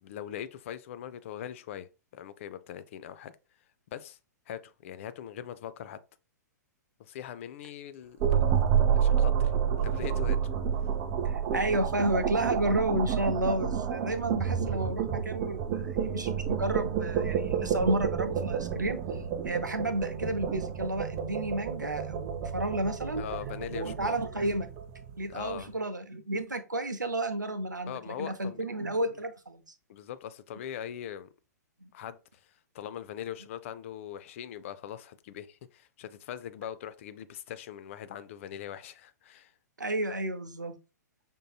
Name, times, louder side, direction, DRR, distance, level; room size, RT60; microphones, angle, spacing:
voice 1, 0.0-1.9 2.1-3.3 3.9-4.2 4.5-6.0 7.0-8.2 8.5-9.5 9.8-10.4 23.2-24.5 25.3-25.8 27.9-28.7 29.9-31.3 31.9-32.2 32.7-39.5, left 10 dB, 45° left, 0.4 m, -41 dB
sound 1, 8.2-25.4, right 8 dB, 35° right, 0.5 m, -29 dB
voice 2, 11.2-23.2 23.7-24.7 25.2-29.6 31.8-31.9 39.8-40.8, right 1 dB, 85° right, 0.7 m, -31 dB
5.3 x 2.7 x 2.3 m
figure-of-eight pair, 110°, 10 cm